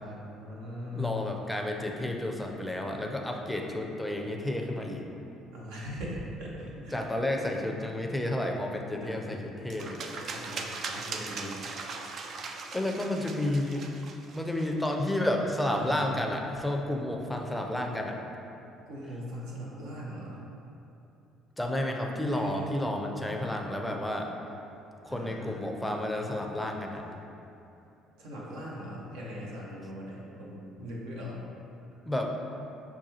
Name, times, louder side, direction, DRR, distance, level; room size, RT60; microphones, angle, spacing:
voice 1, 0.0-1.2 5.5-7.1 9.0-9.4 10.3-11.6 15.7-16.2 18.9-20.4 22.3-22.9 25.1-25.6 28.2-31.4, equal, 80° right, -4 dB, 0.8 m, -40 dB
voice 2, 0.9-5.0 6.9-10.0 12.7-13.9 14.3-18.2 21.6-24.3 25.0-27.0 32.0-32.3, left 1 dB, 5° left, 1 dB, 0.5 m, -31 dB
sound 1, 9.7-14.9, right 4 dB, 55° right, 0.3 m, -39 dB
5.9 x 2.3 x 2.8 m, 2.9 s
supercardioid pair, 65°, 0 cm